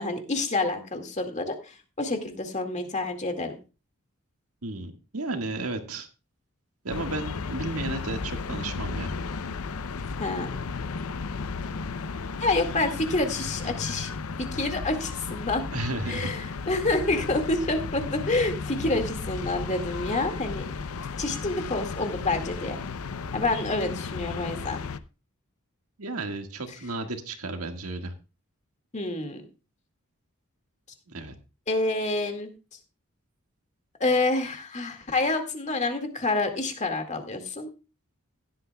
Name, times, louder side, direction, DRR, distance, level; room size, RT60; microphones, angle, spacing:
voice 1, 0.0-3.6 10.2-10.6 12.4-14.1 14.4-15.6 16.1-20.6 21.2-22.8 23.3-24.8 28.9-29.4 31.7-32.5 34.0-37.7, left 2 dB, 35° left, 5 dB, 2.0 m, -28 dB
voice 2, 4.6-6.1 6.8-9.1 15.7-16.3 26.0-28.1 31.1-31.3, right 2 dB, 85° right, 5 dB, 1.7 m, -33 dB
sound 1, 6.9-25.0, left 4 dB, 80° left, 0.6 m, -34 dB
16.0 x 11.5 x 2.3 m, 0.31 s
head